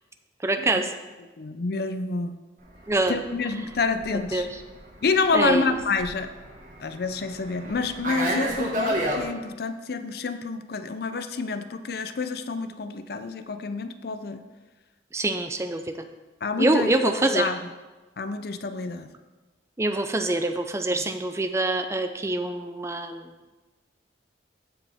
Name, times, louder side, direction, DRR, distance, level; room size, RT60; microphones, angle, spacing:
voice 1, 0.4-0.9 2.9-3.2 4.3-4.5 5.3-5.7 15.1-15.8 16.6-17.5 19.8-23.2, right 2 dB, 15° right, 7 dB, 0.4 m, -25 dB
voice 2, 1.4-2.4 3.1-4.5 5.0-6.3 6.8-14.4 16.4-17.7 18.2-19.1 20.9-21.0, left 4 dB, 55° left, 10 dB, 0.5 m, -28 dB
Fixed-wing aircraft airplane, 2.7-9.2, right 1 dB, 45° right, 1.6 m, -32 dB
14.5 x 5.0 x 3.5 m, 1.2 s
head